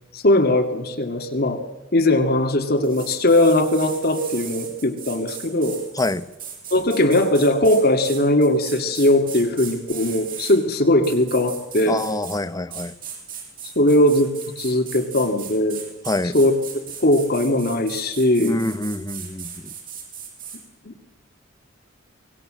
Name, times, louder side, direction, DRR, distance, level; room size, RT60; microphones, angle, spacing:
voice 1, 0.1-1.6 1.9-5.8 6.7-12.0 13.8-14.3 14.6-15.8 16.3-16.5 17.0-18.6 20.8-20.9, left 1 dB, 55° left, 4 dB, 2.3 m, -19 dB
sound 1, 2.8-10.6 11.0-12.4 12.7-20.6, right 7 dB, 45° right, 7.4 m, -37 dB
voice 2, 6.0-6.3 11.9-12.9 16.1-16.4 18.4-19.7, left 2 dB, 20° left, 14 dB, 0.8 m, -26 dB
24.0 x 19.5 x 7.6 m, 1.0 s
head